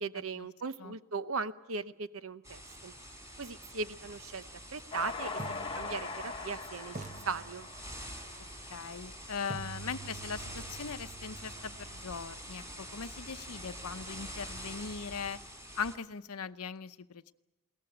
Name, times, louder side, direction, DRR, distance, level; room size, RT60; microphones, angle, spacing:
voice 1, 0.0-2.9 3.4-4.4 4.7-5.4 5.7-7.7, right 4 dB, 65° right, 12 dB, 0.9 m, -38 dB
sound 1, 2.4-16.0, equal, 15° right, 4.1 m, -46 dB
sound 2, 4.3-4.4 5.4-6.6 6.9-8.2 9.5-13.4, right 3 dB, 35° right, 0.9 m, -48 dB
Train, 4.9-9.3, left 4 dB, 20° left, 1.2 m, -41 dB
voice 2, 8.7-15.4 15.7-17.3, left 5 dB, 80° left, 12 dB, 0.8 m, -40 dB
21.5 x 18.5 x 9.9 m, 1.0 s
head